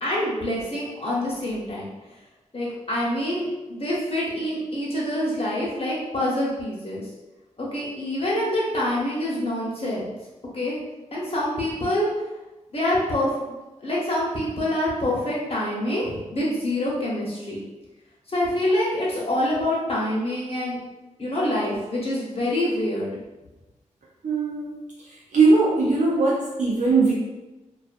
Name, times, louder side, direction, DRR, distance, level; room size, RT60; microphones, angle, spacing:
voice 1, 0.0-2.2 2.5-7.1 7.6-10.1 10.5-10.8 11.1-12.1 12.7-17.6 18.3-20.8 21.2-23.1, left 1 dB, 50° left, -5 dB, 0.9 m, -26 dB
voice 2, 24.2-24.7 25.3-27.1, right 3 dB, 80° right, -6 dB, 0.5 m, -19 dB
2.3 x 2.3 x 2.5 m, 1.1 s
cardioid pair, 50°, 13 cm